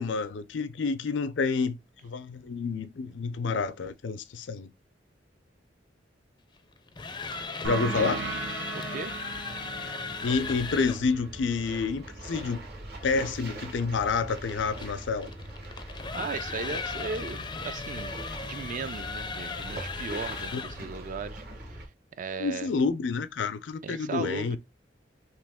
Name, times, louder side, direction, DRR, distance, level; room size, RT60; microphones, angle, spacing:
voice 1, 0.0-1.8 2.0-4.7 7.6-8.2 10.2-12.7 13.0-15.3 20.5-20.6 22.4-24.6, left 4 dB, 80° left, 0.5 m, -29 dB
sound 1, 6.8-11.1 13.7-20.9, left 4 dB, 25° left, 0.4 m, -37 dB
sound 2, 7.6-12.8, right 4 dB, 85° right, 0.7 m, -38 dB
voice 2, 8.7-9.2 16.1-18.1 18.5-21.8 22.2-22.7 23.8-24.6, right 4 dB, 45° right, 0.4 m, -37 dB
sound 3, 10.2-21.9, right 1 dB, 60° right, 1.3 m, -42 dB
3.0 x 2.9 x 3.5 m
head